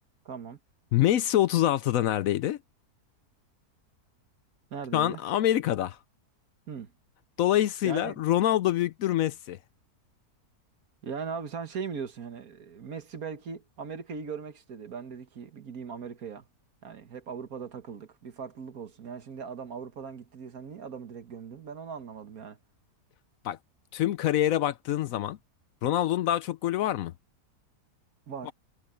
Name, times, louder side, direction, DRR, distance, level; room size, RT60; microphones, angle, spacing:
voice 1, 0.3-0.6 4.7-5.2 6.7-6.9 7.8-8.2 11.0-16.5 16.8-22.6 28.3-28.5, right 6 dB, 70° right, 1.9 m, -39 dB
voice 2, 0.9-2.6 4.9-6.0 7.4-9.6 23.4-23.6 23.9-25.4 25.8-27.1 28.4-28.5, left 12 dB, 70° left, 0.9 m, -25 dB
omnidirectional pair, 1.6 m